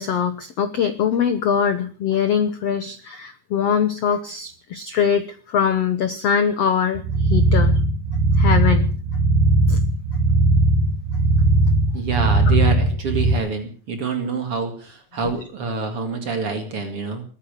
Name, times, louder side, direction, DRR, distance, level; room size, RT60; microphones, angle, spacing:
voice 1, 0.0-7.7 8.4-8.9 9.7-9.8, left 7 dB, 65° left, 10 dB, 1.6 m, -22 dB
sound 1, 7.0-13.4, right 2 dB, 60° right, 2.8 m, -18 dB
voice 2, 11.9-17.2, right 4 dB, 40° right, 6 dB, 2.7 m, -26 dB
21.0 x 10.0 x 6.8 m, 0.42 s
omnidirectional pair, 4.4 m